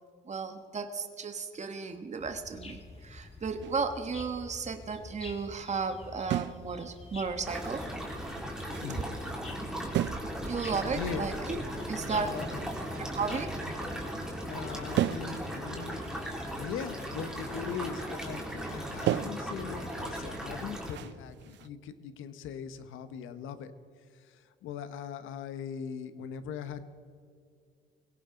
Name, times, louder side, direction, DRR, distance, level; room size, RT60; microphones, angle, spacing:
voice 1, 0.2-7.9 10.0-10.1 10.4-11.6 11.9-12.3 13.0-13.6, right 5 dB, 35° right, 7 dB, 1.3 m, -34 dB
sound 1, 2.2-16.4, left 3 dB, 30° left, 2.0 m, -48 dB
sound 2, 3.6-4.0 6.3-6.8 7.1-7.2 8.1-8.2 8.7-9.1 9.9-10.5 10.8-10.9 11.5-14.6 15.0-17.2 17.5-18.2 18.5-18.8 19.1-21.7, right 13 dB, 65° right, 0.4 m, -36 dB
sound 3, 7.4-20.9, equal, 5° right, 3.6 m, -37 dB
voice 2, 10.9-11.3 12.1-12.7 14.5-16.1 16.4-23.7 24.3-26.8, left 7 dB, 85° left, 11 dB, 1.1 m, -40 dB
21.5 x 17.5 x 3.9 m, 2.3 s
cardioid pair, 90°, 20 cm